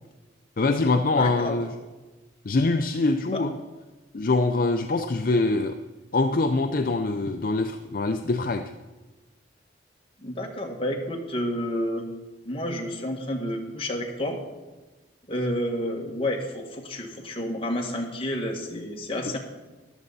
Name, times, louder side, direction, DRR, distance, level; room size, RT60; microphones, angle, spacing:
voice 1, 0.6-1.7 2.5-3.5 4.1-5.8 6.1-8.7, left 3 dB, 50° left, 7 dB, 0.5 m, -24 dB
voice 2, 1.2-1.6 10.2-12.0 12.4-14.4 15.3-19.4, left 1 dB, 30° left, 1 dB, 1.7 m, -30 dB
14.0 x 11.5 x 4.1 m, 1.2 s
head